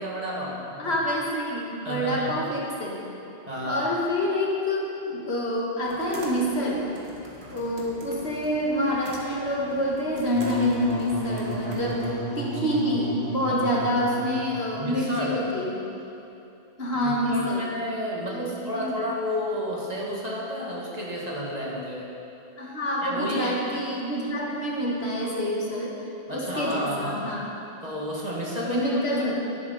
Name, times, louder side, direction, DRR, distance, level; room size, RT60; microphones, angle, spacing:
voice 1, 0.0-0.9 1.8-2.3 3.5-3.9 13.7-13.9 14.8-15.4 16.9-22.1 23.0-23.6 26.3-27.3 27.8-28.9 29.2-29.3, equal, 40° right, -5 dB, 1.9 m, -31 dB
voice 2, 0.8-3.0 3.6-6.8 7.5-15.8 16.8-17.6 18.3-18.9 22.6-25.9 26.3-27.4 28.6-29.4, left 1 dB, 70° left, -3 dB, 1.9 m, -27 dB
sound 1, 5.8-12.1, right 1 dB, 70° right, 1.7 m, -44 dB
Wind instrument woodwind instrument, 10.3-14.8, right 2 dB, 55° right, 1.5 m, -32 dB
11.5 x 10.5 x 4.0 m, 2.8 s
omnidirectional pair, 1.1 m